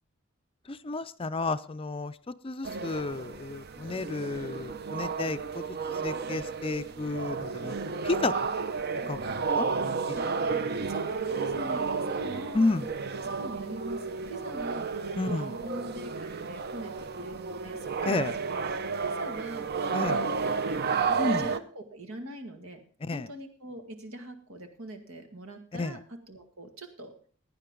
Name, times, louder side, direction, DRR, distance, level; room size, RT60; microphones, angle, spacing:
voice 1, 0.7-2.2 2.4-5.6 6.0-7.8 8.0-8.3 9.1-9.3 9.6-10.2 12.5-12.9 15.2-15.6 18.0-18.3 19.9-20.2 21.2-21.5 23.0-23.3 25.7-26.0, left 3 dB, 25° left, 12 dB, 0.4 m, -31 dB
sound 1, 2.6-21.6, right 5 dB, 50° right, 0.7 m, -32 dB
voice 2, 10.1-10.5 10.9-12.8 13.2-18.6 19.0-22.8 23.1-26.0 26.3-27.1, right 1 dB, 85° right, 6 dB, 2.0 m, -42 dB
16.0 x 9.8 x 3.8 m, 0.43 s
head